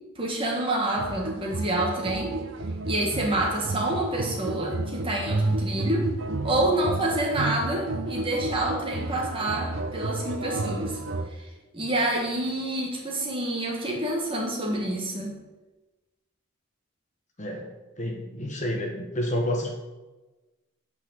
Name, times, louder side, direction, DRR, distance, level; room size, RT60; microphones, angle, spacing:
voice 1, 0.2-2.4 2.9-6.1 6.4-11.0 11.4-11.5 11.7-15.3, right 1 dB, 25° right, -1 dB, 1.8 m, -27 dB
sound 1, 1.0-11.3, right 2 dB, 65° right, 0.7 m, -31 dB
voice 2, 17.4-19.7, left 1 dB, 35° left, 2 dB, 1.1 m, -30 dB
8.2 x 5.5 x 6.5 m, 1.1 s
head